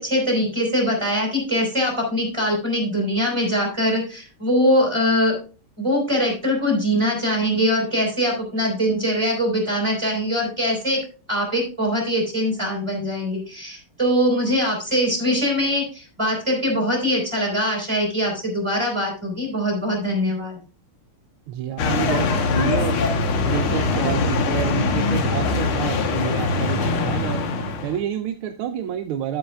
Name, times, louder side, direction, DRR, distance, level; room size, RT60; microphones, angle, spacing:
voice 1, 0.0-5.4 5.8-11.0 11.3-20.6, equal, 15° right, 0 dB, 3.9 m, -22 dB
voice 2, 21.5-23.0 23.5-27.4 27.8-29.4, right 9 dB, 85° right, 8 dB, 1.5 m, -29 dB
sound 1, 21.8-28.0, left 3 dB, 80° left, 2.1 m, -22 dB
11.0 x 8.7 x 2.3 m, 0.36 s
omnidirectional pair, 2.3 m